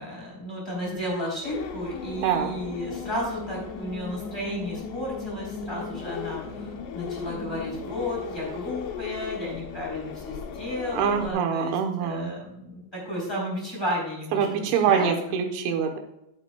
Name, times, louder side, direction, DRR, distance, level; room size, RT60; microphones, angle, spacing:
voice 1, 0.0-15.4, left 1 dB, 5° left, -4 dB, 2.7 m, -33 dB
sound 1, 1.4-11.3, left 5 dB, 75° left, 2.8 m, -37 dB
voice 2, 2.2-2.5 10.9-12.3 14.3-16.0, right 7 dB, 80° right, 4 dB, 3.2 m, -24 dB
12.0 x 8.9 x 2.3 m, 0.81 s
omnidirectional pair, 5.8 m